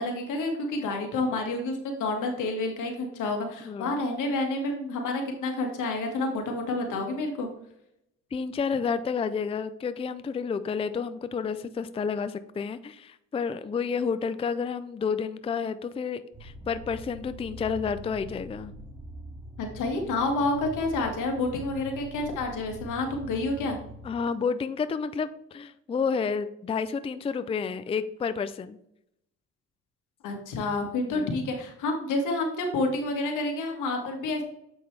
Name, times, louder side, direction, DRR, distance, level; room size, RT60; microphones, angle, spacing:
voice 1, 0.0-7.5 19.6-23.8 30.2-34.4, left 2 dB, 85° left, 3 dB, 1.7 m, -29 dB
voice 2, 3.6-4.0 8.3-18.7 24.0-28.8 31.1-31.3, left 5 dB, 20° left, 12 dB, 0.4 m, -30 dB
sound 1, 16.3-24.1, equal, 5° right, 1.8 m, -43 dB
8.0 x 5.3 x 3.3 m, 0.77 s
cardioid pair, 90°, 30 cm